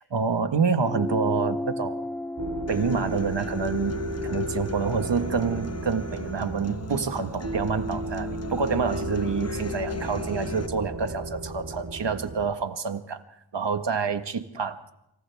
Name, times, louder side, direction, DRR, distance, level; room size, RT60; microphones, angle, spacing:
voice 1, 0.1-2.0 2.7-4.0 4.2-13.2 13.5-15.0, right 5 dB, 70° right, 8 dB, 1.6 m, -27 dB
sound 1, 0.8-5.6, left 1 dB, 5° left, 0.8 m, -35 dB
sound 2, 2.4-12.5, right 1 dB, 40° right, 4.1 m, -34 dB
Human voice / Acoustic guitar, 2.7-10.7, left 5 dB, 35° left, 1.0 m, -38 dB
28.0 x 26.5 x 3.5 m, 0.84 s
cardioid pair, 40°, 44 cm